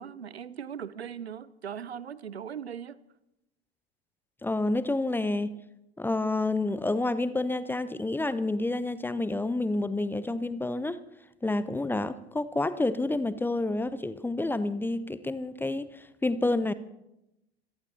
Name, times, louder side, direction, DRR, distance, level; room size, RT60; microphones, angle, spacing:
voice 1, 0.0-3.0, right 8 dB, 80° right, 0.7 m, -39 dB
voice 2, 4.4-5.6 6.0-11.0 11.4-16.7, left 2 dB, 5° left, 0.6 m, -29 dB
26.0 x 17.5 x 2.8 m
figure-of-eight pair, 80°, 31 cm